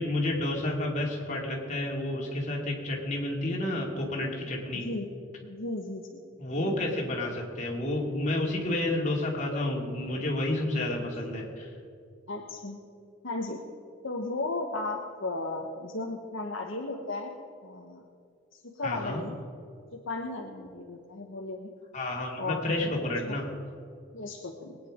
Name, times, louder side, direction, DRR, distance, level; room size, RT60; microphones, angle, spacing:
voice 1, 0.0-4.9 6.4-11.7 18.8-19.2 21.9-23.5, left 1 dB, 40° left, -2 dB, 2.8 m, -30 dB
voice 2, 4.7-5.1 5.4-6.2 12.3-12.8 13.2-13.6 14.0-17.3 17.6-18.0 18.5-19.4 19.9-21.7 22.4-23.4 24.1-24.8, left 2 dB, 70° left, 1 dB, 1.2 m, -35 dB
21.0 x 9.3 x 5.1 m, 2.4 s
head